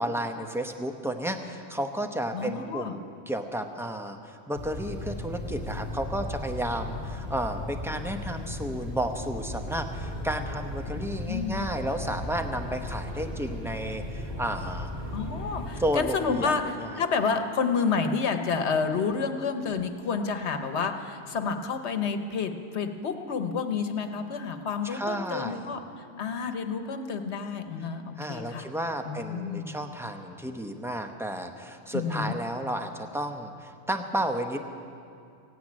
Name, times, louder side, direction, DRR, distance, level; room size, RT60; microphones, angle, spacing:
voice 1, 0.0-14.9 15.8-17.0 18.8-18.9 24.8-25.7 28.2-34.6, right 1 dB, 5° right, 5 dB, 0.7 m, -32 dB
voice 2, 2.3-2.9 10.9-11.5 15.1-25.8 26.2-28.7 29.1-29.7 31.9-32.3, left 5 dB, 85° left, 7 dB, 1.2 m, -29 dB
sound 1, 4.5-15.9, left 1 dB, 50° right, 3.1 m, -36 dB
16.5 x 9.4 x 8.8 m, 2.4 s
omnidirectional pair, 1.1 m